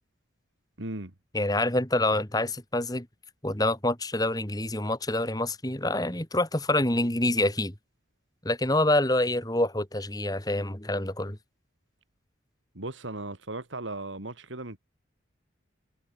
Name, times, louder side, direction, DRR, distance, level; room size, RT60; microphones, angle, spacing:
voice 1, 0.8-1.1 12.7-14.8, right 2 dB, 80° right, 2.6 m, -37 dB
voice 2, 1.3-3.1 3.4-7.7 8.4-11.4, left 1 dB, 20° left, 2.5 m, -26 dB
head